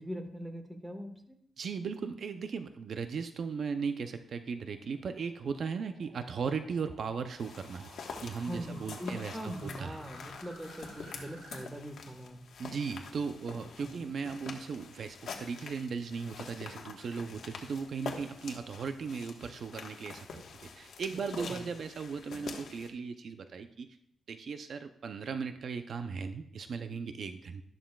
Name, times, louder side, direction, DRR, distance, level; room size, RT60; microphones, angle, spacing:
voice 1, 0.0-1.4 8.4-12.4 13.8-14.1 21.1-21.6, equal, 5° right, 5 dB, 1.4 m, -42 dB
voice 2, 1.6-7.9 8.2-10.0 12.6-23.9 24.3-27.6, right 5 dB, 60° right, 8 dB, 0.5 m, -37 dB
sound 1, 3.9-11.6, right 3 dB, 85° right, 2.3 m, -56 dB
sound 2, 7.4-22.9, left 5 dB, 75° left, 1.3 m, -46 dB
12.5 x 11.5 x 2.3 m, 0.71 s
cardioid pair, 105°, 0 cm